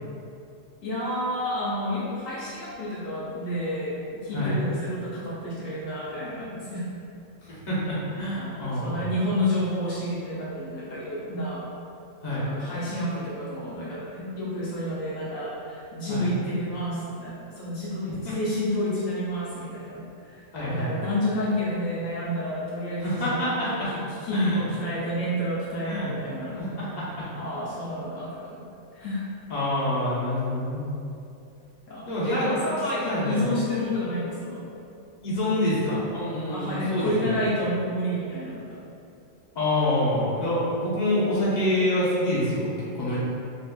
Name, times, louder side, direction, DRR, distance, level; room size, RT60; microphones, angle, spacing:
voice 1, 0.8-6.9 8.3-11.6 12.4-26.6 27.3-28.7 28.9-29.3 31.9-34.7 36.5-38.9, left 1 dB, 70° left, -7 dB, 1.0 m, -30 dB
voice 2, 7.4-9.0 12.2-12.4 16.1-16.2 18.2-18.3 20.5-20.9 23.0-23.9 24.3-24.6 25.8-26.1 26.6-27.2 29.5-30.9 32.1-32.5 33.0-33.4 35.2-37.4 39.5-43.2, left 1 dB, 35° left, -9 dB, 0.9 m, -26 dB
4.0 x 2.6 x 2.3 m, 2.6 s
omnidirectional pair, 1.5 m